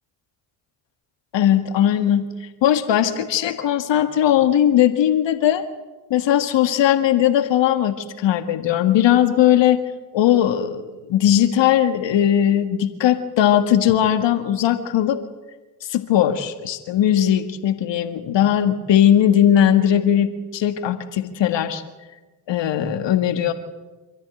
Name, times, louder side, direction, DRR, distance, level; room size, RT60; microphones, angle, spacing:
voice 1, 1.3-5.6 6.1-9.8 10.1-15.2 15.9-21.8 22.5-23.5, left 10 dB, 60° left, 9 dB, 1.8 m, -18 dB
26.0 x 15.0 x 9.1 m, 1.2 s
hypercardioid pair, 55°, 48 cm